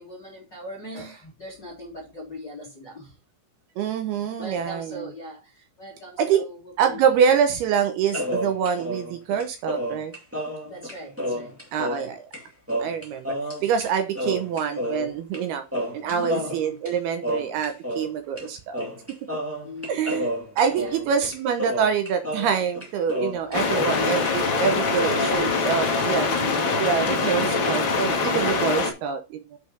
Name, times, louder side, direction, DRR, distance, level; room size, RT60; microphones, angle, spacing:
voice 1, 0.0-3.2 4.4-7.2 10.6-11.6 16.0-16.5 19.6-20.1 20.7-21.0 23.4-23.8 26.3-26.8 27.1-27.8, left 1 dB, 30° left, -5 dB, 2.2 m, -40 dB
voice 2, 3.8-5.1 6.2-6.5 6.8-10.1 11.7-12.2 12.8-13.3 13.6-15.6 15.9-18.8 19.9-20.3 20.6-26.3 26.8-29.6, right 7 dB, 75° right, 8 dB, 2.5 m, -25 dB
sound 1, 8.1-12.1 12.3-12.4 12.7-13.9 14.1-15.4 15.7-18.1 18.4-18.5 18.7-24.0 24.2-25.3, equal, 15° right, 0.4 m, -30 dB
sound 2, 23.5-28.9, left 4 dB, 75° left, 1.1 m, -23 dB
7.8 x 5.9 x 5.2 m, 0.29 s
omnidirectional pair, 5.1 m